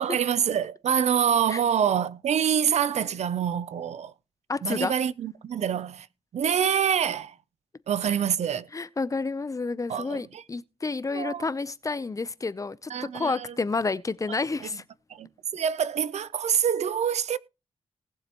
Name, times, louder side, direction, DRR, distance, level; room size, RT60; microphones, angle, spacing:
voice 1, 0.0-4.1 4.6-6.1 6.3-7.3 7.9-8.7 9.9-10.4 11.1-11.4 12.9-13.5 15.1-17.4, right 8 dB, 80° right, 0.6 m, -26 dB
voice 2, 4.5-4.9 8.0-8.2 8.7-14.8, left 3 dB, 30° left, 0.6 m, -30 dB
19.0 x 7.2 x 3.0 m
cardioid pair, 90°, 11 cm